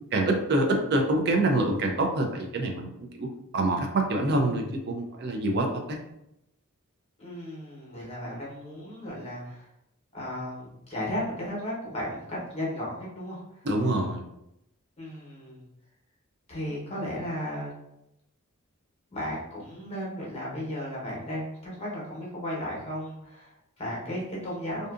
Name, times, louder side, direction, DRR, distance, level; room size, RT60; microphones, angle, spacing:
voice 1, 0.1-3.3 3.5-6.0 13.7-14.2, right 2 dB, 50° right, 2 dB, 0.4 m, -26 dB
voice 2, 7.2-9.7 10.1-13.7 15.0-15.6 16.5-17.7 19.1-24.9, equal, 30° left, -5 dB, 0.8 m, -35 dB
2.6 x 2.4 x 2.4 m, 0.83 s
head